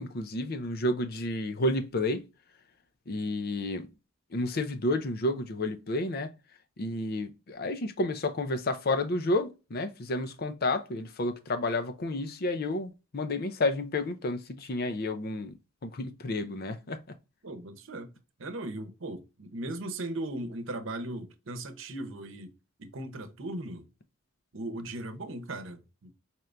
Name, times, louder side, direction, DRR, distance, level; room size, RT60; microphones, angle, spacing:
voice 1, 0.0-2.3 3.1-3.9 4.3-6.3 6.8-15.5 15.8-17.2, left 2 dB, 45° left, 0.6 m, -31 dB
voice 2, 17.4-18.1 18.4-22.5 22.8-23.9 24.5-26.1, right 1 dB, 65° right, 0.8 m, -38 dB
4.4 x 2.5 x 3.3 m
head